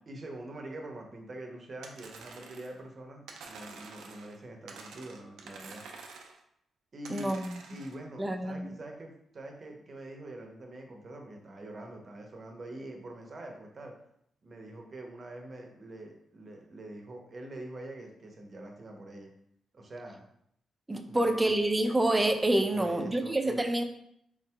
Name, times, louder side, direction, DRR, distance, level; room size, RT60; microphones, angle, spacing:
voice 1, 0.1-5.8 6.9-7.4 7.7-13.9 14.4-19.3 19.7-20.2 21.0-21.6 22.7-23.6, right 1 dB, 45° right, 2 dB, 0.7 m, -44 dB
sound 1, 1.8-2.8 3.3-4.4 4.7-6.4 7.0-8.0, right 4 dB, 85° right, 0.4 m, -48 dB
voice 2, 7.1-7.7 8.2-8.8 20.9-23.8, right 1 dB, 20° right, 5 dB, 0.4 m, -27 dB
3.7 x 2.7 x 2.2 m, 0.73 s
cardioid pair, 65°, 0 cm